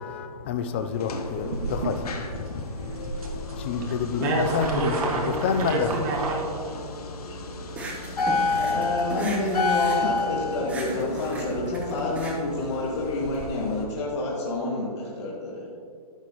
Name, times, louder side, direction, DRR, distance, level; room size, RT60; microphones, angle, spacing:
voice 1, 0.0-2.9 3.2-4.9 5.4-5.9, left 6 dB, 20° left, 8 dB, 0.3 m, -29 dB
sound 1, 0.7-13.8, left 3 dB, 70° left, 1.3 m, -32 dB
sound 2, 1.2-6.3, right 3 dB, 65° right, 2.0 m, -33 dB
voice 2, 3.9-6.7, right 2 dB, 30° right, 1 dB, 1.3 m, -29 dB
sound 3, 7.7-13.4, right 2 dB, 5° right, 0.8 m, -37 dB
voice 3, 8.5-15.7, left 2 dB, 45° left, -4 dB, 2.0 m, -28 dB
12.0 x 8.2 x 3.0 m, 2.1 s
hypercardioid pair, 155°, 20 cm